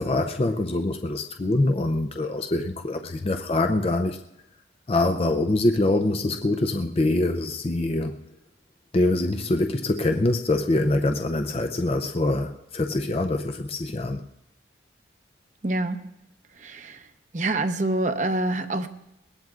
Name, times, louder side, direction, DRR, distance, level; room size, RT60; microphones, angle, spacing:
voice 1, 0.0-4.2 4.9-8.2 8.9-14.2, left 2 dB, 30° left, 6 dB, 0.5 m, -24 dB
voice 2, 15.6-16.0 16.6-17.0 17.3-18.9, right 2 dB, 40° right, 8 dB, 0.8 m, -26 dB
21.5 x 19.0 x 2.4 m, 0.90 s
head